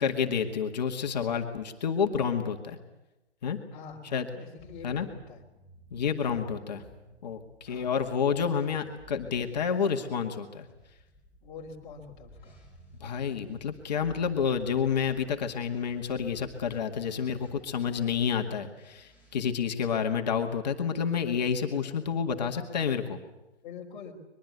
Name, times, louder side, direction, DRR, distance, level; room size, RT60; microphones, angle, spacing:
voice 1, 0.0-2.8 3.4-3.6 4.1-4.3 4.8-5.1 5.9-6.8 7.2-10.7 13.0-23.2, left 7 dB, 35° left, 4 dB, 2.0 m, -29 dB
voice 2, 3.7-5.4 6.2-6.4 7.6-7.9 11.4-12.6 23.6-24.1, left 5 dB, 15° left, -2 dB, 3.3 m, -45 dB
sound 1, 4.6-9.6 10.6-18.0 18.7-19.3, equal, 5° right, 5.5 m, -55 dB
23.0 x 22.0 x 8.2 m, 0.99 s
figure-of-eight pair, 145°, 35 cm